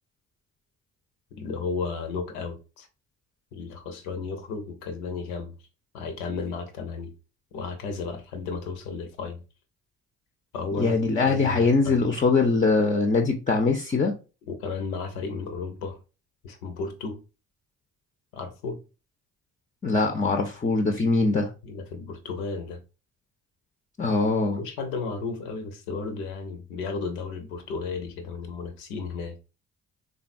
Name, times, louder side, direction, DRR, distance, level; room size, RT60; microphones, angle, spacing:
voice 1, 1.3-2.9 3.5-5.5 5.9-7.1 7.5-9.4 10.5-10.9 11.2-12.0 14.5-16.0 16.4-17.2 18.3-18.8 21.6-22.8 24.6-29.4, left 4 dB, 80° left, 0.7 m, -33 dB
voice 2, 10.8-14.1 19.8-21.5 24.0-24.6, left 3 dB, 20° left, 0.5 m, -22 dB
3.5 x 2.3 x 2.5 m
hypercardioid pair, 45°, 42 cm